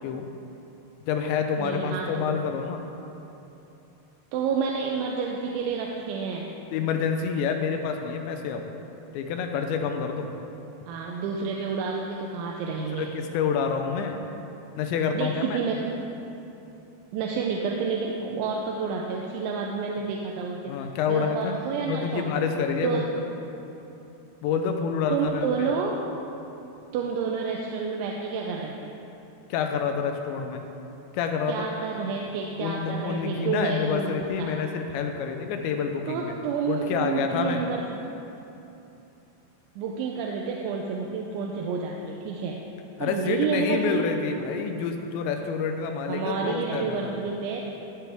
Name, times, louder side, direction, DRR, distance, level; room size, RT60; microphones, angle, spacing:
voice 1, 1.1-2.8 6.7-8.6 9.1-10.3 12.9-14.2 14.8-15.6 20.7-21.6 21.9-23.3 24.4-25.7 29.5-30.6 31.1-31.7 32.6-36.3 36.7-37.6 43.0-47.2, left 6 dB, 80° left, 5 dB, 2.9 m, -28 dB
voice 2, 1.6-2.3 4.3-6.5 10.9-13.1 15.1-16.0 17.1-20.7 21.1-22.3 22.8-23.1 25.1-25.9 26.9-28.9 31.5-34.1 34.4-34.5 36.1-38.0 39.8-42.6 43.0-44.0 46.1-47.7, right 5 dB, 90° right, -1 dB, 3.1 m, -29 dB
16.0 x 9.2 x 3.5 m, 3.0 s
omnidirectional pair, 5.2 m